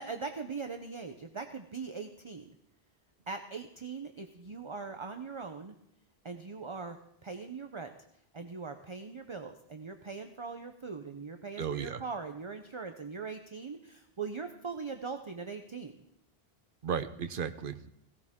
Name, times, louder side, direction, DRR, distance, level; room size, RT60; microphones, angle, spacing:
voice 1, 0.0-2.6 3.3-5.7 6.2-7.0 7.2-7.9 8.3-15.9, right 4 dB, 30° right, 6 dB, 0.7 m, -41 dB
voice 2, 11.6-12.0 16.8-17.9, right 7 dB, 60° right, 10 dB, 1.0 m, -35 dB
17.0 x 17.0 x 3.6 m, 0.75 s
omnidirectional pair, 1.0 m